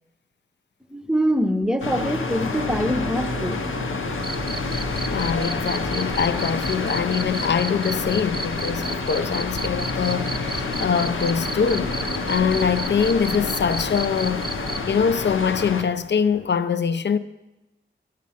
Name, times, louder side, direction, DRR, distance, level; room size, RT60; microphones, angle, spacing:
voice 1, 0.9-3.6, equal, 5° right, 0.6 m, -24 dB
sound 1, 1.8-15.8, left 4 dB, 90° left, 0.7 m, -28 dB
sound 2, 2.6-16.5, right 3 dB, 90° right, 0.7 m, -41 dB
Cricket, 4.2-14.8, right 3 dB, 50° right, 0.7 m, -33 dB
voice 2, 5.1-11.9 12.3-14.5 14.9-17.2, left 6 dB, 60° left, 0.4 m, -23 dB
7.5 x 7.4 x 5.6 m
wide cardioid pair, 65°, 20 cm